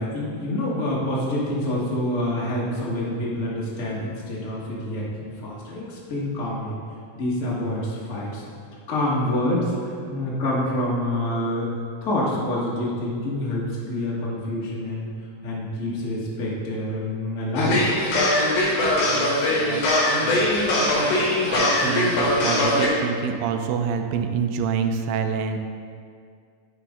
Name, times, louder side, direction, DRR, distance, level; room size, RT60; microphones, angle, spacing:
voice 1, 0.0-6.7 7.1-8.4 8.9-11.7 12.0-15.1 15.4-17.9, left 1 dB, 85° left, -5 dB, 0.6 m, -27 dB
sound 1, 17.6-22.9, left 1 dB, 65° left, 2.6 m, -21 dB
voice 2, 19.1-25.6, right 6 dB, 90° right, 6 dB, 2.3 m, -28 dB
10.0 x 5.0 x 3.6 m, 2.2 s
omnidirectional pair, 3.9 m